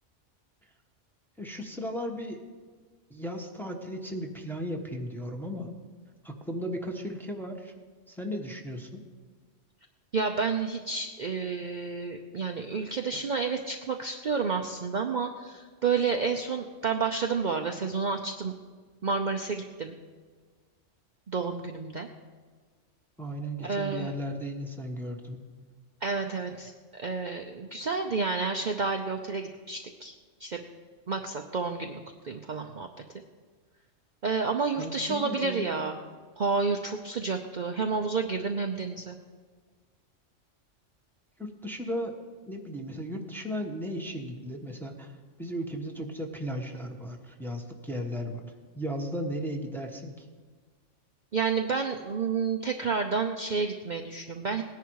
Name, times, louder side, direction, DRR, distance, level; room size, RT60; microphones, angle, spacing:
voice 1, 1.4-2.4 3.1-5.7 6.2-7.7 8.1-9.0 23.2-25.4 34.8-35.7 41.4-42.1 42.5-45.1 45.4-48.5 48.7-50.3, equal, ahead, 1 dB, 1.2 m, -35 dB
voice 2, 10.1-18.5 19.0-19.9 21.3-22.1 23.6-24.1 26.0-30.1 30.4-30.6 31.1-32.9 34.2-36.0 36.4-39.2 51.3-54.6, right 5 dB, 45° right, 4 dB, 0.7 m, -30 dB
18.5 x 10.5 x 4.7 m, 1.5 s
omnidirectional pair, 1.3 m